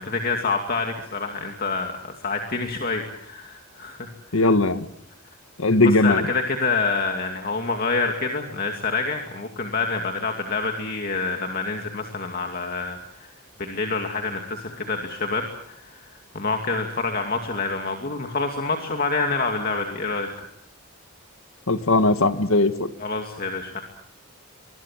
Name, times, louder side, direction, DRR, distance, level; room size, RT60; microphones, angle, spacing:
voice 1, 0.0-1.9 2.2-4.1 4.3-4.5 5.8-13.3 13.6-16.0 16.3-20.5 23.0-23.8, left 3 dB, 45° left, 3 dB, 2.4 m, -27 dB
voice 2, 4.3-4.9 5.6-6.2 21.7-22.9, left 2 dB, 80° left, 10 dB, 1.6 m, -19 dB
24.5 x 22.0 x 7.5 m, 0.72 s
head